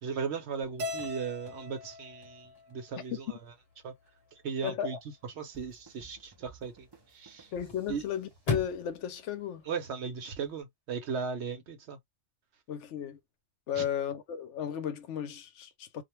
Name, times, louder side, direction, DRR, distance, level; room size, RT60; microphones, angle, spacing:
voice 1, 0.0-3.4 3.8-3.9 4.3-5.0 5.4-7.5 7.9-8.0 9.7-12.0 13.7-13.9, right 6 dB, 70° right, 0.9 m, -37 dB
Chirp tweet / Car / Slam, 0.6-10.6, left 3 dB, 35° left, 0.9 m, -44 dB
Keyboard (musical), 0.8-3.1, left 2 dB, 85° right, 1.1 m, -41 dB
voice 2, 4.6-5.0 7.5-9.6 12.7-13.2 13.7-16.0, left 9 dB, 80° left, 0.9 m, -34 dB
sound 1, 5.5-9.1, right 4 dB, 35° right, 0.4 m, -57 dB
2.4 x 2.2 x 3.0 m
omnidirectional pair, 1.2 m